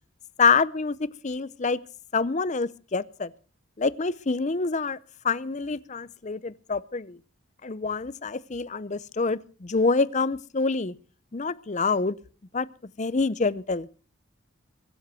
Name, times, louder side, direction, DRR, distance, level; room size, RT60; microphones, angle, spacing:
voice 1, 0.4-1.8 2.1-3.3 3.8-5.0 5.2-7.2 7.6-10.9 11.3-12.1 12.5-12.7 13.0-13.9, left 4 dB, 35° left, 0.6 m, -26 dB
23.0 x 7.9 x 6.1 m
head